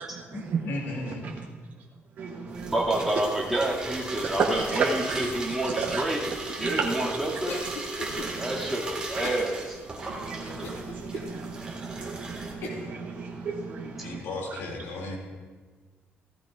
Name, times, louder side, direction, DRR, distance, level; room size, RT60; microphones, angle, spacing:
voice 1, 0.3-1.4 14.0-15.2, left 2 dB, 75° left, 0 dB, 2.6 m, -35 dB
voice 2, 2.2-2.7 4.4-5.2 5.8-6.0 6.6-6.9 8.1-8.5 10.1-14.1, right 5 dB, 45° right, 0 dB, 0.9 m, -32 dB
sound 1, 2.5-12.5, right 3 dB, 20° right, 1.8 m, -37 dB
voice 3, 2.7-6.2 6.6-7.6 8.3-9.8 14.0-14.1, right 1 dB, 5° right, -6 dB, 2.2 m, -29 dB
Cough, 7.5-8.3 9.2-9.5 10.0-10.1 10.6-11.3 11.9-12.0 12.6-12.9, left 3 dB, 90° left, 2.1 m, -37 dB
15.5 x 13.5 x 2.5 m, 1.4 s
cardioid pair, 170°, 4 cm